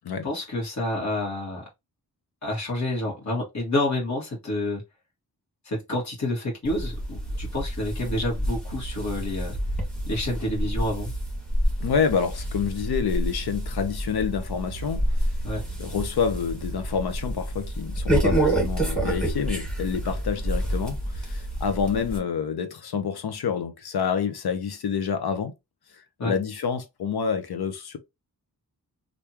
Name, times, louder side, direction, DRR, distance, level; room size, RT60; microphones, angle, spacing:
voice 1, 0.2-1.6 2.4-4.8 5.7-9.6 10.1-11.1 15.4-15.6 26.2-26.3, left 1 dB, 45° left, 1.8 m, -28 dB
sound 1, 6.6-22.2, right 1 dB, ahead, 1.9 m, -28 dB
voice 2, 11.8-15.1 15.8-25.5 26.2-28.0, left 6 dB, 85° left, 0.8 m, -28 dB
3.4 x 2.6 x 2.9 m
wide cardioid pair, 90°, 37 cm